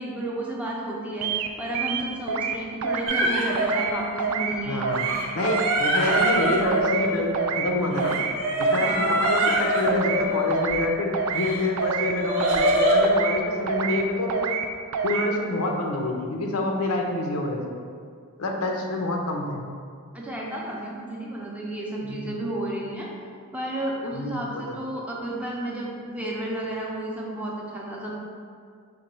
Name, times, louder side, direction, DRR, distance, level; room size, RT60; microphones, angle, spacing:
voice 1, 0.0-4.8 8.8-9.2 20.1-23.1 23.5-28.1, right 1 dB, 5° right, -4 dB, 0.5 m, -32 dB
sound 1, 1.2-1.5 1.7-2.6 2.8-3.3 3.6-3.9 4.2-4.5 4.8-5.2 5.4-5.8 6.1-6.4 6.7-7.1 7.3-7.7 8.0-8.3 8.6-9.0 9.2-9.6 9.9-10.2 10.5-10.9 11.1-11.5 11.8-12.1 12.4-12.8 13.0-13.4 13.7-14.0 14.3-14.7 14.9-15.3, right 6 dB, 85° right, 0.3 m, -27 dB
sound 2, 3.1-4.5 4.9-7.6 7.9-10.9 11.4-13.1, equal, 70° right, 0.8 m, -25 dB
voice 2, 4.6-5.1 5.3-8.2 8.6-14.6 15.0-17.7 18.4-19.6 22.0-22.3 24.1-24.4 24.7-24.8, left 2 dB, 85° left, 1 dB, 0.6 m, -27 dB
5.2 x 2.2 x 4.2 m, 2.2 s
head